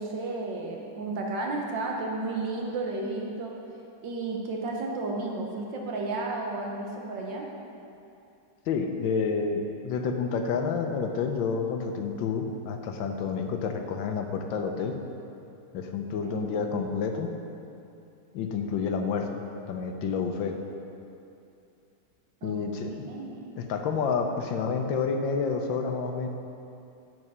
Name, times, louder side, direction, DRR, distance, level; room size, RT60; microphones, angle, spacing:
voice 1, 0.0-3.5 4.0-7.5 16.2-16.6 22.4-23.5, right 2 dB, 75° right, 0 dB, 1.8 m, -33 dB
voice 2, 8.7-15.0 15.7-17.3 18.3-19.4 19.7-20.6 22.4-23.1 23.6-26.3, left 5 dB, 85° left, 4 dB, 1.5 m, -29 dB
9.6 x 6.2 x 5.6 m, 2.6 s
omnidirectional pair, 2.0 m